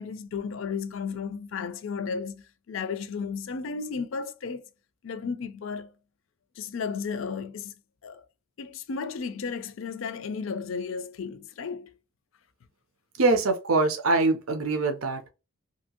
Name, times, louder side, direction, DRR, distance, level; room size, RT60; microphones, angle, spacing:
voice 1, 0.0-4.6 5.0-5.9 6.6-7.7 8.0-8.2 8.6-12.0, left 5 dB, 70° left, 0.4 m, -34 dB
voice 2, 13.2-15.3, right 3 dB, 90° right, 0.6 m, -23 dB
2.8 x 2.6 x 2.7 m
head